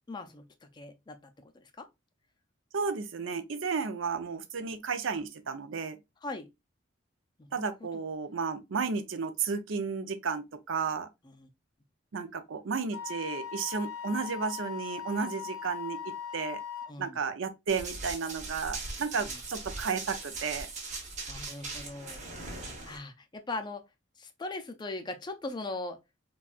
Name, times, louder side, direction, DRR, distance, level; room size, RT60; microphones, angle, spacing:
voice 1, 0.0-1.9 6.2-6.5 7.4-8.0 11.2-11.5 16.9-17.2 19.2-19.4 21.3-23.9 24.2-26.0, left 2 dB, 20° left, 0.4 m, -41 dB
voice 2, 2.7-6.0 7.5-11.1 12.1-16.6 17.0-20.7, right 5 dB, 70° right, 0.5 m, -33 dB
Wind instrument woodwind instrument, 12.9-16.9, left 8 dB, 90° left, 0.6 m, -39 dB
Run, 17.7-23.0, right 3 dB, 35° right, 1.0 m, -40 dB
4.0 x 2.3 x 2.3 m
head